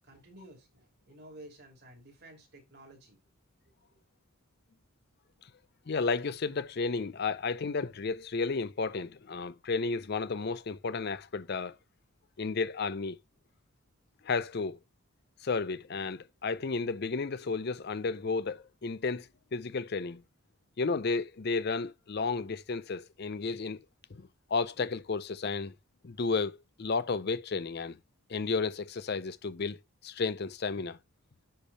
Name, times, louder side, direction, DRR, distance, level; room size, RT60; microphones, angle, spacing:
voice 1, 0.0-3.2 3.6-3.7, right 1 dB, 45° right, 3.0 m, -53 dB
voice 2, 5.9-11.7 12.4-13.2 14.2-14.8 15.4-20.2 20.8-23.8 24.1-25.7 26.0-28.0 28.3-31.0, left 4 dB, 50° left, 0.5 m, -32 dB
10.0 x 3.5 x 4.1 m
head